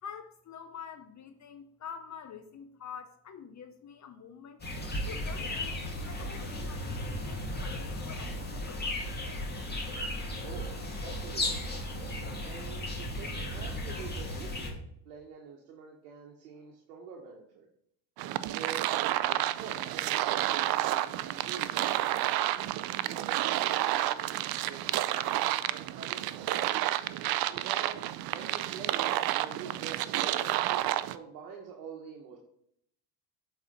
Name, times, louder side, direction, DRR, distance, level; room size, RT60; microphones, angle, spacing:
voice 1, 0.0-4.6 5.0-9.2, left 7 dB, 35° left, 8 dB, 0.7 m, -47 dB
sound 1, 4.6-14.7, left 1 dB, 20° left, 2.0 m, -35 dB
voice 2, 11.0-11.7 12.4-17.7 18.5-18.9 19.3-26.7 27.4-28.0 28.3-32.4, right 6 dB, 90° right, -1 dB, 1.2 m, -46 dB
sound 2, 18.2-31.2, right 14 dB, 50° right, 0.5 m, -30 dB
8.2 x 4.2 x 4.0 m, 0.71 s
supercardioid pair, 80°, 48 cm